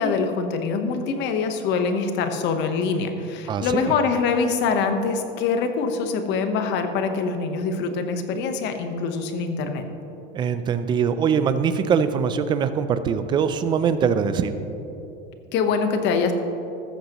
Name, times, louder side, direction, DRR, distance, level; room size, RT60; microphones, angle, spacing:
voice 1, 0.0-9.8 15.5-16.3, left 5 dB, 40° left, 7 dB, 1.1 m, -24 dB
voice 2, 3.5-3.9 10.3-14.6, right 7 dB, 15° right, 11 dB, 0.4 m, -22 dB
14.0 x 13.5 x 3.0 m, 3.0 s
supercardioid pair, 155°, 29 cm